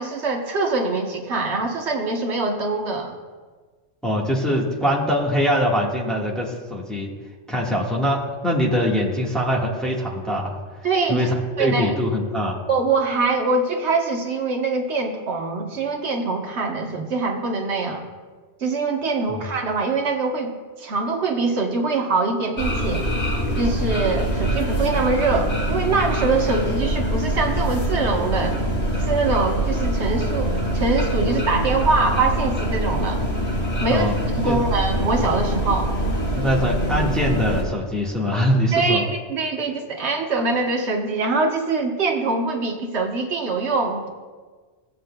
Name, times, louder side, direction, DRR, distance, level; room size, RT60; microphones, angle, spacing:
voice 1, 0.0-3.2 10.8-11.3 11.6-11.9 12.7-18.1 18.6-20.5 20.8-23.0 23.6-28.7 29.0-33.2 33.8-34.1 34.4-35.9 38.7-44.1, right 3 dB, 75° right, 1 dB, 1.3 m, -23 dB
voice 2, 4.0-7.1 7.5-10.6 11.1-12.6 19.3-19.4 33.9-34.1 34.4-34.6 36.3-39.1, equal, ahead, -4 dB, 1.4 m, -23 dB
sound 1, 22.6-37.6, right 1 dB, 50° left, 1.7 m, -24 dB
17.0 x 7.6 x 2.2 m, 1.4 s
omnidirectional pair, 1.2 m